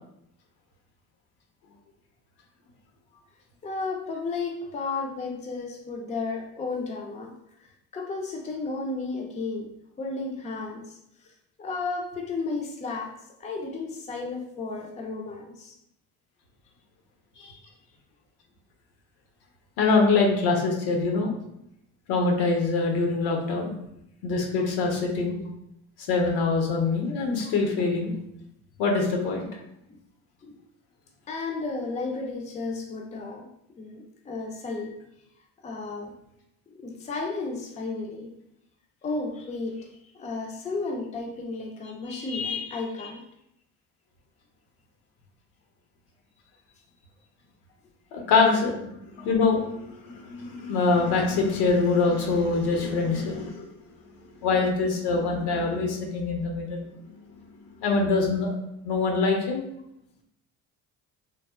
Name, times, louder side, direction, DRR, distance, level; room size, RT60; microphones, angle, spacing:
voice 1, 3.6-11.0 11.6-13.1 13.4-15.8 29.9-30.0 30.4-30.5 31.3-33.5 33.8-35.0 35.6-36.1 36.7-38.3 39.0-43.2, left 3 dB, 20° left, 2 dB, 0.4 m, -33 dB
voice 2, 19.8-21.3 22.1-23.7 24.2-25.3 26.0-28.1 28.8-29.5 42.1-42.3 48.1-48.8 49.1-53.7 54.4-56.8 57.8-58.5 58.8-59.6, left 4 dB, 65° left, 2 dB, 0.8 m, -24 dB
3.3 x 2.0 x 2.3 m, 0.78 s
hypercardioid pair, 60°, 42 cm